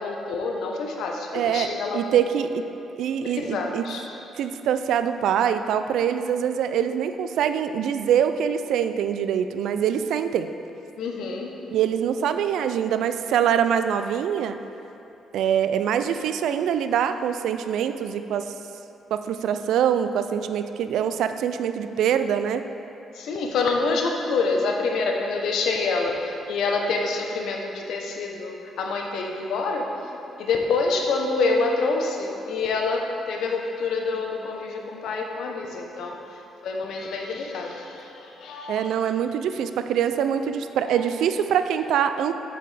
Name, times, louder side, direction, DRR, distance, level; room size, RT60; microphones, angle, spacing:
voice 1, 0.0-2.0 3.2-4.0 11.0-11.5 23.1-29.9 30.4-36.2 36.6-38.9 40.9-41.0, left 3 dB, 75° left, 1 dB, 0.8 m, -27 dB
voice 2, 1.3-2.6 3.0-3.8 4.4-10.5 11.7-14.6 15.3-18.5 19.1-22.6 38.7-42.3, right 8 dB, 80° right, 10 dB, 0.3 m, -24 dB
7.4 x 6.7 x 3.3 m, 2.9 s
cardioid pair, 90°, 0 cm